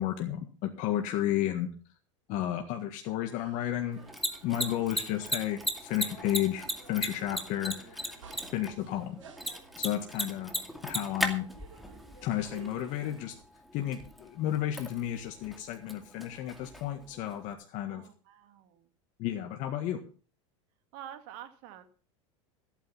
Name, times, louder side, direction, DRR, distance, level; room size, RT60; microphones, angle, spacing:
voice 1, 0.0-1.7 2.3-4.0 4.4-8.2 8.5-9.2 9.8-10.5 10.8-11.5 12.2-13.3 13.7-18.0 19.2-20.0, left 12 dB, 55° left, 5 dB, 1.7 m, -32 dB
sound 1, 3.3-13.4, right 6 dB, 90° right, 3.1 m, -55 dB
Mechanisms, 3.9-17.5, equal, ahead, 2.4 m, -38 dB
voice 2, 4.5-4.8 13.9-14.1 17.9-18.9 20.9-21.8, right 10 dB, 60° right, 9 dB, 2.0 m, -48 dB
14.5 x 9.1 x 5.6 m, 0.38 s
hypercardioid pair, 100°, 16 cm